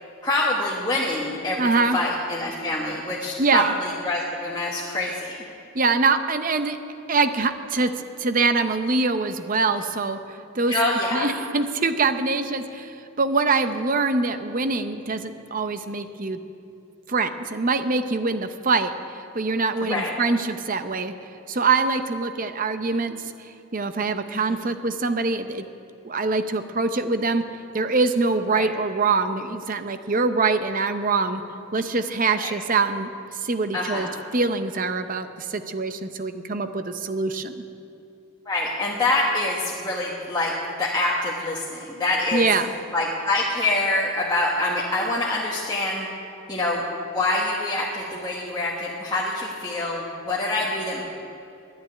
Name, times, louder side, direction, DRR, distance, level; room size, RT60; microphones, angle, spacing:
voice 1, 0.2-5.4 10.7-11.3 19.8-20.1 24.5-24.6 28.5-28.7 32.3-32.5 33.7-34.1 38.5-42.4 42.9-46.1 46.5-46.8 47.1-51.0, left 2 dB, 20° left, -4 dB, 1.2 m, -25 dB
voice 2, 1.6-2.0 3.4-3.7 5.7-6.8 7.1-7.9 8.2-10.2 10.5-10.7 11.1-16.4 17.1-18.9 19.3-21.1 21.5-23.2 23.7-25.6 26.0-27.4 27.7-31.4 31.7-33.1 33.4-34.1 34.3-37.5 42.3-42.7, right 4 dB, 40° right, 9 dB, 0.7 m, -24 dB
11.5 x 10.0 x 9.8 m, 2.7 s
head